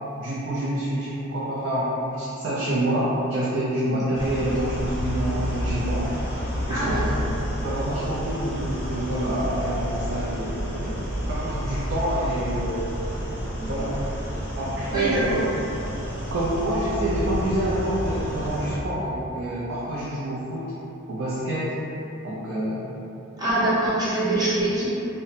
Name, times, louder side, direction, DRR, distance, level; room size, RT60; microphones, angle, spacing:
voice 1, 0.2-6.1 6.7-7.2 7.6-13.0 13.6-14.1 14.6-15.5 16.3-20.6 21.1-21.7 22.2-22.9, right 1 dB, 55° right, -8 dB, 0.4 m, -27 dB
sound 1, 4.1-18.7, equal, 40° left, 0.7 m, -30 dB
voice 2, 6.7-7.2 13.6-13.7 14.9-15.4 23.4-24.9, right 1 dB, 20° right, -11 dB, 0.7 m, -24 dB
2.9 x 2.1 x 2.7 m, 2.9 s
head